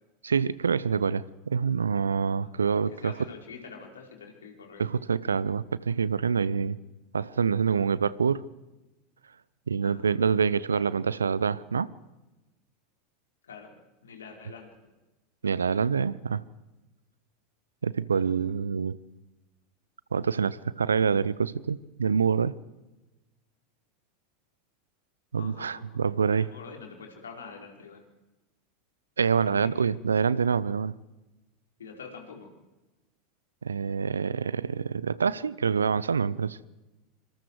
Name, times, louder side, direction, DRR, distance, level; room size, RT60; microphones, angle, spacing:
voice 1, 0.2-3.1 4.8-6.8 7.1-8.4 9.7-11.9 15.4-16.4 17.8-19.0 20.1-22.5 25.3-26.5 29.2-30.9 33.6-36.6, right 6 dB, 75° right, 0.7 m, -26 dB
voice 2, 2.9-4.9 9.8-10.3 10.7-10.9 13.4-13.7 14.0-14.7 18.1-18.5 25.4-28.0 29.3-29.9 31.8-32.5, left 5 dB, 75° left, 4.6 m, -46 dB
26.0 x 25.5 x 4.8 m
figure-of-eight pair, 80°, 0 cm